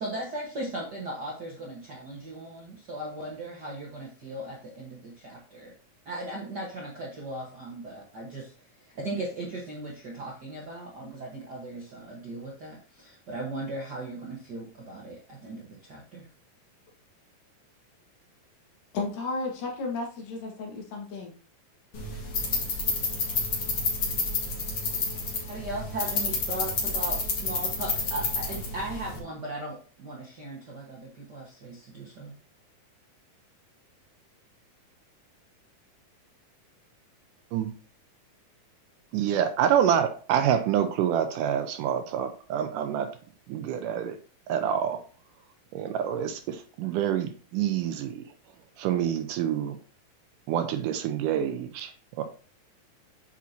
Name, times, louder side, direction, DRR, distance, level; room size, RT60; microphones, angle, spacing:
voice 1, 0.0-5.7 6.0-8.5 8.9-16.2 25.5-32.3, right 2 dB, 55° right, -3 dB, 1.1 m, -37 dB
voice 2, 18.9-21.3, left 3 dB, 75° left, 1 dB, 3.4 m, -33 dB
sound 1, 21.9-29.2, left 3 dB, 45° left, 2.5 m, -30 dB
voice 3, 39.1-43.1 43.5-44.2 44.5-45.0 45.7-48.2 48.8-49.8 50.5-51.9 52.2-52.3, right 9 dB, 80° right, 8 dB, 2.1 m, -27 dB
8.4 x 5.8 x 2.8 m, 0.41 s
omnidirectional pair, 4.0 m